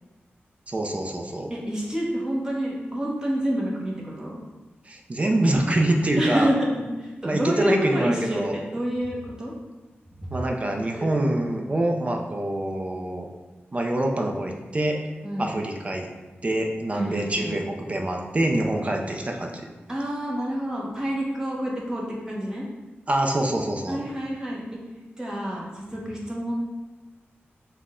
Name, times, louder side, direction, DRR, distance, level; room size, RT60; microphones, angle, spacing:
voice 1, 0.7-1.5 4.9-6.5 7.2-8.5 10.3-13.3 13.7-15.0 15.4-16.1 16.4-19.7 23.1-24.0, right 1 dB, 30° right, 2 dB, 0.5 m, -25 dB
voice 2, 1.5-4.4 6.2-9.5 10.2-10.3 10.9-11.1 15.2-15.5 16.9-17.5 19.9-22.6 23.9-24.8 25.2-26.5, equal, 15° right, -4 dB, 1.0 m, -28 dB
6.0 x 2.2 x 3.6 m, 1.2 s
wide cardioid pair, 130°, 4 cm